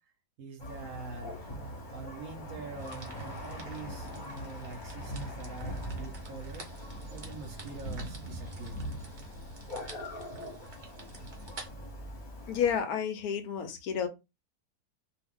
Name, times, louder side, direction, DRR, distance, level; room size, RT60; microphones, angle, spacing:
voice 1, 0.4-1.5 1.9-8.8, right 4 dB, 60° right, 1.0 m, -45 dB
Thunder, 0.6-12.8, equal, 35° left, 0.9 m, -41 dB
sound 1, 2.8-11.7, right 3 dB, 45° right, 0.6 m, -51 dB
voice 2, 12.5-14.1, left 7 dB, 70° left, 1.0 m, -30 dB
2.7 x 2.4 x 3.5 m
omnidirectional pair, 1.8 m